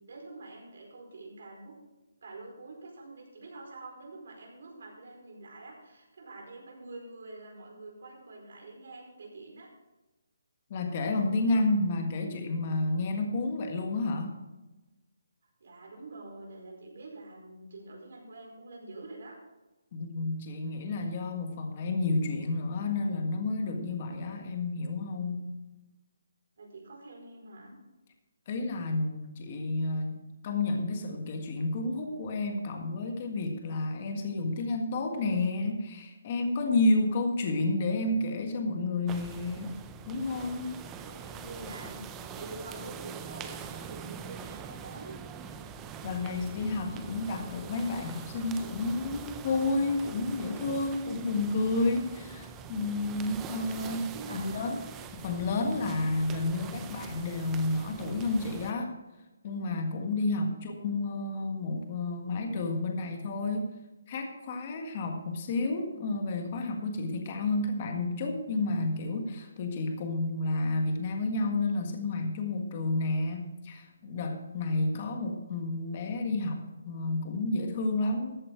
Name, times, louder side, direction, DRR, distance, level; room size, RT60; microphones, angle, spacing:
voice 1, 0.0-1.8 2.2-9.7 15.6-19.4 26.6-27.7 40.8-45.1 54.1-54.8 60.3-60.7, right 2 dB, 60° right, 0 dB, 4.6 m, -46 dB
voice 2, 10.7-14.3 19.9-25.5 28.5-39.7 40.1-40.8 46.0-54.8 55.1-58.9 59.4-63.8 64.1-78.4, left 2 dB, 30° left, 4 dB, 1.7 m, -30 dB
sound 1, 39.1-58.7, right 6 dB, 10° right, 0.5 m, -44 dB
14.0 x 8.4 x 4.8 m, 1.1 s
hypercardioid pair, 170°, 0 cm